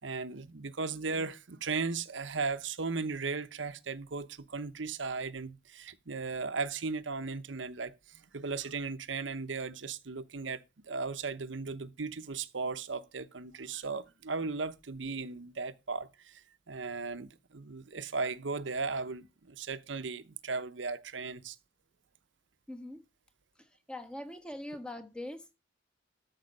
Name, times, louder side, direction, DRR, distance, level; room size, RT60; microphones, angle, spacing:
voice 1, 0.0-21.6, right 4 dB, 75° right, 0.9 m, -36 dB
voice 2, 22.7-23.0 23.9-25.5, left 1 dB, 5° left, 1.3 m, -42 dB
13.0 x 5.9 x 5.3 m
head